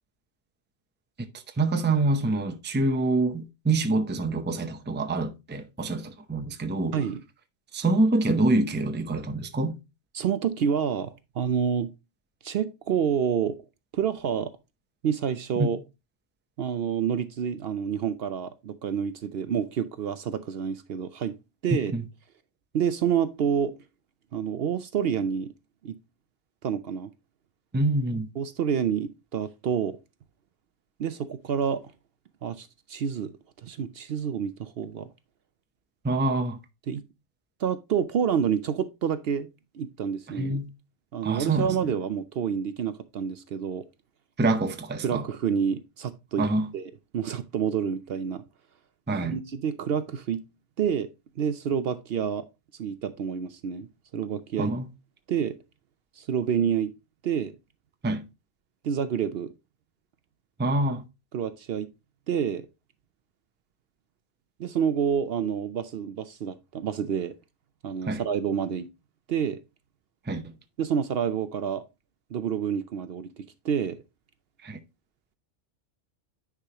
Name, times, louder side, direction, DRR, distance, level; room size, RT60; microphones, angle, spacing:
voice 1, 1.6-7.0 7.7-9.8 15.6-15.7 21.7-22.0 27.7-28.3 36.0-36.6 40.4-40.7 41.2-41.8 44.4-45.2 46.4-46.7 49.1-49.4 54.6-54.9 58.0-58.2 60.6-61.0 68.1-68.2 70.3-70.4 74.6-74.8, right 2 dB, 10° right, 0.5 m, -26 dB
voice 2, 10.1-11.9 12.4-13.6 13.9-14.5 15.0-15.8 16.6-21.4 21.6-21.9 22.7-23.8 24.3-25.5 25.8-26.0 26.6-27.1 28.4-30.0 31.0-31.9 32.4-33.3 33.6-35.1 36.9-37.0 37.6-39.5 39.7-40.6 41.1-43.8 45.0-46.5 46.7-48.4 49.2-50.4 50.8-51.1 51.4-52.5 52.8-54.7 55.3-55.6 56.2-56.9 57.2-57.6 58.8-59.5 61.3-61.9 62.3-62.7 64.6-67.4 67.8-68.9 69.3-69.6 70.8-71.8 72.3-74.0, right 7 dB, 60° right, 0.7 m, -28 dB
9.8 x 4.9 x 2.8 m
omnidirectional pair, 1.2 m